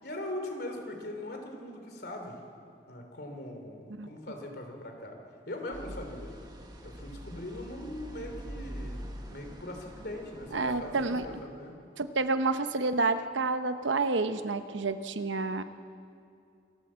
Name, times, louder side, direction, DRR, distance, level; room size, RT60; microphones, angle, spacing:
voice 1, 0.0-2.4 2.9-5.2 5.5-6.3 6.8-11.8, left 1 dB, 55° left, 3 dB, 3.3 m, -40 dB
sound 1, 5.7-11.4, equal, 20° right, 1.5 m, -44 dB
voice 2, 10.5-11.3 12.0-15.6, right 3 dB, 85° right, 10 dB, 0.9 m, -29 dB
27.0 x 13.0 x 7.6 m, 2.5 s
head